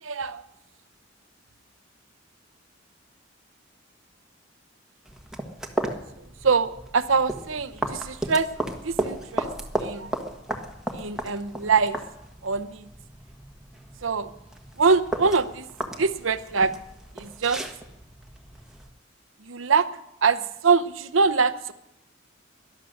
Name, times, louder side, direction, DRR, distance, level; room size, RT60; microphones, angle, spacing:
voice 1, 0.0-0.4 6.2-8.5 8.8-9.5 9.8-10.1 10.9-12.0 12.4-12.9 14.0-14.3 14.8-15.7 16.0-16.7 17.2-17.6 19.4-19.9 20.2-21.7, right 5 dB, 85° right, 12 dB, 0.8 m, -24 dB
sound 1, 5.1-18.9, right 1 dB, 5° right, 1.4 m, -35 dB
18.0 x 12.0 x 6.5 m, 0.87 s
head